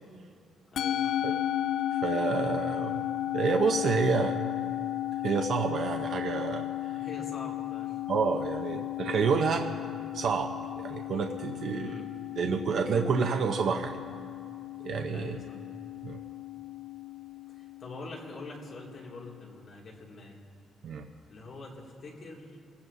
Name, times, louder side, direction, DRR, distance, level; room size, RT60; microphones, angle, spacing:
voice 1, 0.7-1.2 6.9-8.0 11.7-12.1 15.1-15.6 17.5-20.4 21.3-22.6, left 2 dB, 40° left, -3 dB, 2.3 m, -44 dB
Musical instrument, 0.8-19.3, left 13 dB, 55° left, 0.3 m, -35 dB
voice 2, 2.0-3.0 3.3-4.4 5.2-7.0 8.1-9.7 10.1-12.0 12.4-13.9 14.8-15.4 16.0-16.2 20.8-21.0, right 5 dB, 50° right, 3 dB, 0.7 m, -29 dB
27.5 x 15.5 x 2.7 m, 2.4 s
cardioid pair, 175°, 0 cm